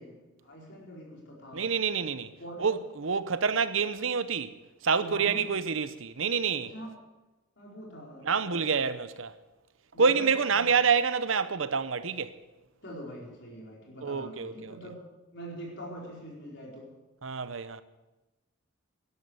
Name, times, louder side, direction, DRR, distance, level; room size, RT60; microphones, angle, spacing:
voice 1, 0.0-1.7 2.4-2.8 5.0-5.5 6.6-6.9 7.6-8.8 9.9-10.7 12.8-15.0 15.3-16.9, right 1 dB, 60° left, 4.7 m, -44 dB
voice 2, 1.5-2.3 2.6-4.5 4.8-6.7 8.2-9.3 10.0-12.3 14.0-14.8 17.2-17.8, right 5 dB, 75° right, 0.8 m, -27 dB
12.0 x 12.0 x 8.2 m
head